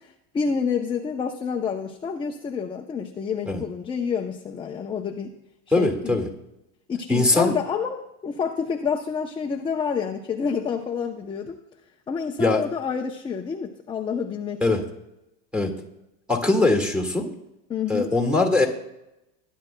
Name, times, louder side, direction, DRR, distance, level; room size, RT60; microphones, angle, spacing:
voice 1, 0.0-5.4 5.8-6.2 6.9-11.6 12.1-14.8 17.7-18.1, left 6 dB, 15° left, 2 dB, 0.6 m, -28 dB
voice 2, 5.7-6.2 7.1-7.5 12.4-12.6 14.6-14.8 15.5-15.7 16.3-17.3 17.9-18.7, left 2 dB, 5° right, 1 dB, 1.8 m, -21 dB
20.0 x 10.0 x 2.2 m, 0.89 s
supercardioid pair, 140°, 32 cm